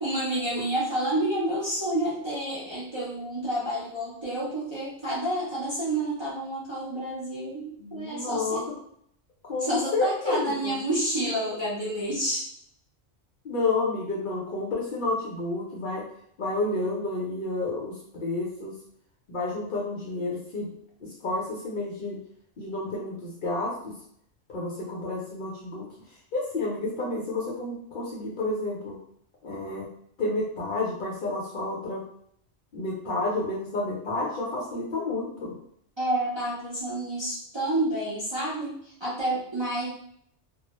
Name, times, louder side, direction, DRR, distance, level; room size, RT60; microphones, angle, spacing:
voice 1, 0.0-8.6 9.6-12.5 36.0-39.9, right 1 dB, 35° right, -8 dB, 0.5 m, -29 dB
voice 2, 7.8-8.8 9.4-10.8 13.4-16.1 16.4-18.8 19.3-20.7 21.0-22.2 22.6-23.9 24.5-25.8 26.3-29.0 29.4-29.9 30.2-32.0 32.7-35.5, left 2 dB, 60° left, -3 dB, 0.6 m, -30 dB
2.2 x 2.0 x 2.8 m, 0.68 s
omnidirectional pair, 1.2 m